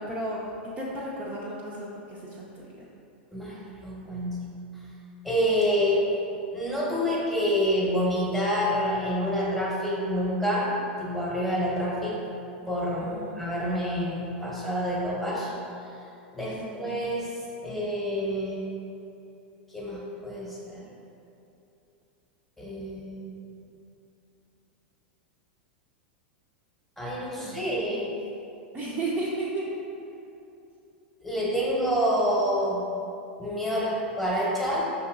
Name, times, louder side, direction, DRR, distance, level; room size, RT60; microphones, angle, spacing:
voice 1, 0.0-2.6 13.0-13.4 16.5-16.9 27.4-28.1 28.7-29.7, right 2 dB, 25° right, -6 dB, 0.5 m, -34 dB
voice 2, 3.8-4.4 5.2-6.1 6.5-10.7 11.0-12.2 12.7-15.5 16.3-17.3 17.6-18.6 19.7-20.8 22.6-23.4 27.0-28.1 31.2-32.8 33.4-34.8, equal, 5° left, -5 dB, 1.0 m, -27 dB
5.4 x 2.9 x 2.3 m, 2.7 s
hypercardioid pair, 105°, 6 cm